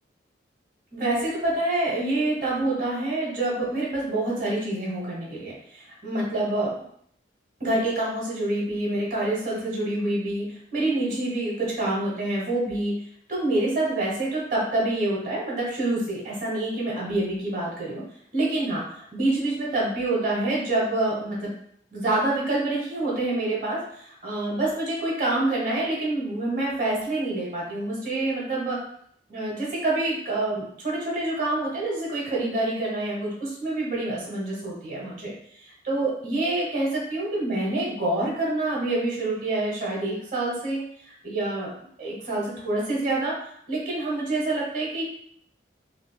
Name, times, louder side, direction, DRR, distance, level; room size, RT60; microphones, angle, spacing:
voice 1, 0.9-6.8 7.6-12.9 13.3-18.0 18.3-21.5 21.9-28.8 29.3-35.3 35.8-43.3 43.7-45.0, right 2 dB, 45° right, -5 dB, 1.2 m, -27 dB
4.6 x 2.1 x 2.2 m, 0.66 s
head